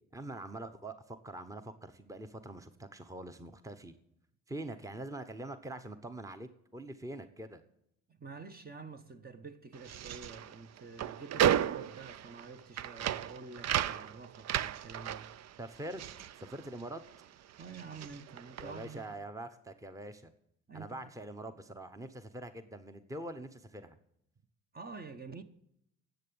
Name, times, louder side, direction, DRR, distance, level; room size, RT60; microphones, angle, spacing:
voice 1, 0.1-3.9 4.5-7.6 15.6-16.0 16.4-17.0 18.6-20.3 20.7-24.0, right 1 dB, 10° right, 1.0 m, -44 dB
voice 2, 8.1-15.3 17.6-19.0 20.7-21.0 24.7-25.4, right 4 dB, 30° right, 1.2 m, -48 dB
sound 1, 9.7-17.2 17.5-19.0, right 10 dB, 60° right, 0.6 m, -34 dB
10.5 x 8.0 x 9.4 m
cardioid pair, 90°, 30 cm